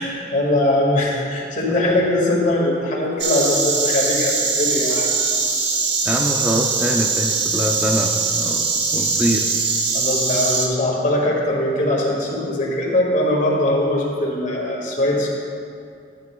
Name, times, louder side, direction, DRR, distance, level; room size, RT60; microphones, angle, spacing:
voice 1, 0.0-5.1 9.9-15.3, left 1 dB, 45° left, -3 dB, 1.9 m, -21 dB
Insect, 3.2-10.7, right 4 dB, 70° right, 1.1 m, -21 dB
voice 2, 6.0-9.5, equal, 10° right, 0 dB, 0.5 m, -24 dB
13.0 x 9.6 x 2.3 m, 2.5 s
head